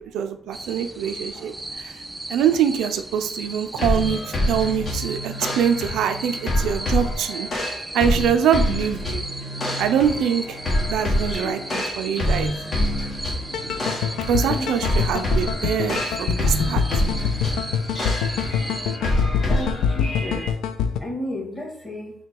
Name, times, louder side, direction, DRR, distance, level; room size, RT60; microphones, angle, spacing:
voice 1, 0.0-1.5 1.8-2.0 2.3-7.5 7.9-9.2 9.8-10.6 10.9-12.5 14.3-16.8, right 8 dB, 85° right, 8 dB, 0.4 m, -24 dB
sound 1, 0.5-19.0, right 1 dB, 10° right, 0.3 m, -36 dB
sound 2, 3.8-20.5, left 1 dB, 45° left, 1.2 m, -26 dB
sound 3, 13.5-21.0, left 7 dB, 85° left, 0.3 m, -25 dB
voice 2, 19.4-20.5 21.0-22.1, equal, 15° left, -2 dB, 1.7 m, -32 dB
3.7 x 2.2 x 4.5 m, 0.64 s
cardioid pair, 90°, 0 cm